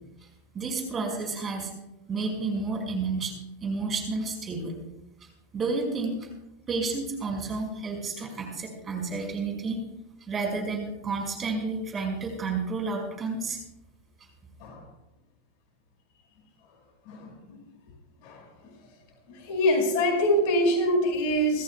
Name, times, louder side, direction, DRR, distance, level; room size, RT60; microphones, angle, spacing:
voice 1, 0.5-1.7 2.1-3.3 3.6-4.7 5.5-6.3 6.7-9.8 10.2-13.6, right 3 dB, 25° right, 2 dB, 5.3 m, -31 dB
voice 2, 17.1-17.6 18.2-18.4 19.3-21.6, equal, 55° left, 2 dB, 5.1 m, -25 dB
27.5 x 14.5 x 2.3 m, 0.92 s
hypercardioid pair, 95°, 0 cm